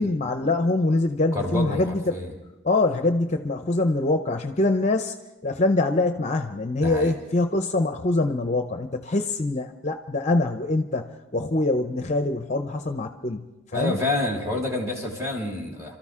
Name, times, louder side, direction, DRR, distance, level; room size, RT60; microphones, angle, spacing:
voice 1, 0.0-2.0 2.6-5.1 5.4-14.0, left 2 dB, 35° left, 7 dB, 0.6 m, -24 dB
voice 2, 1.3-2.3 6.8-7.1 13.7-16.0, left 2 dB, 15° right, 0 dB, 2.8 m, -28 dB
27.5 x 13.5 x 3.7 m, 1.1 s
head